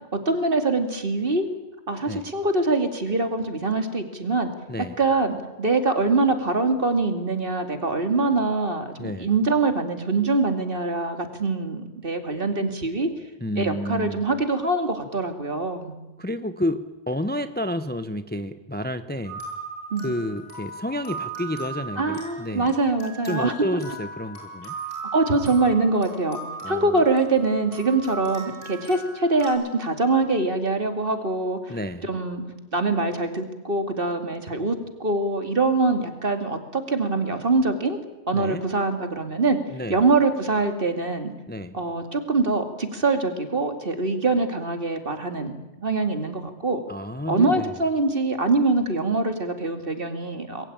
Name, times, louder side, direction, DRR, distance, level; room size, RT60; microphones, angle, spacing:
voice 1, 0.1-1.5 1.9-4.5 5.0-13.1 13.6-16.0 19.9-20.1 22.0-23.5 25.1-26.4 26.7-31.7 32.0-32.4 32.7-38.0 38.3-39.6 39.9-41.3 41.7-46.8 47.3-50.7, right 3 dB, 50° right, 7 dB, 2.7 m, -24 dB
voice 2, 9.0-9.3 13.4-14.2 16.2-19.4 20.0-22.7 23.2-24.7 26.6-27.0 31.7-32.1 38.3-38.6 39.7-40.0 41.5-41.8 46.9-47.7, equal, 10° left, 10 dB, 0.8 m, -30 dB
sound 1, 19.2-29.5, right 3 dB, 80° left, 8.6 m, -38 dB
27.0 x 21.5 x 8.7 m, 1.0 s
omnidirectional pair, 1.2 m